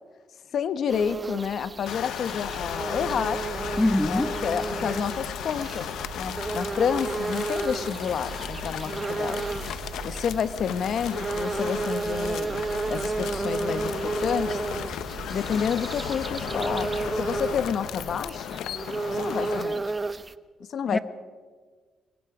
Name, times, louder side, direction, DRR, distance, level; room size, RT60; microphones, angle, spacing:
voice 1, 0.5-3.4 4.1-5.9 6.2-9.4 10.0-14.6 15.3-18.6 19.1-19.8 20.7-21.0, left 7 dB, 60° left, 1.2 m, -29 dB
sound 1, 0.9-20.3, right 3 dB, 25° right, 0.8 m, -33 dB
sound 2, 1.9-19.6, left 10 dB, 80° left, 0.9 m, -36 dB
sound 3, 2.4-18.3, right 4 dB, 90° right, 4.2 m, -42 dB
voice 2, 3.8-4.3 20.9-21.0, left 1 dB, 10° left, 1.0 m, -23 dB
25.0 x 22.5 x 5.0 m
cardioid pair, 90°, 0 cm